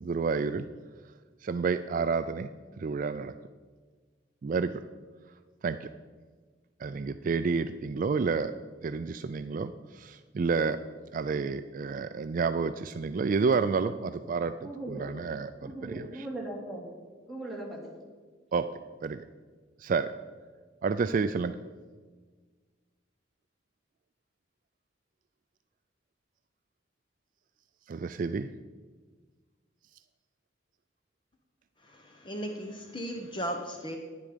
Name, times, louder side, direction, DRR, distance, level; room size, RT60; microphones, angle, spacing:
voice 1, 0.0-0.7 1.4-2.5 2.8-3.3 4.4-4.8 5.6-5.9 6.8-8.5 8.8-10.8 11.1-16.3 18.5-18.7 19.0-19.2 19.8-20.1 20.8-21.6 27.9-28.5, right 5 dB, 45° right, 11 dB, 0.3 m, -30 dB
voice 2, 14.6-15.0 15.6-16.8 17.3-17.8, right 1 dB, ahead, -4 dB, 2.5 m, -39 dB
voice 3, 31.8-34.0, equal, 25° left, 3 dB, 0.9 m, -36 dB
10.5 x 10.0 x 5.1 m, 1.5 s
head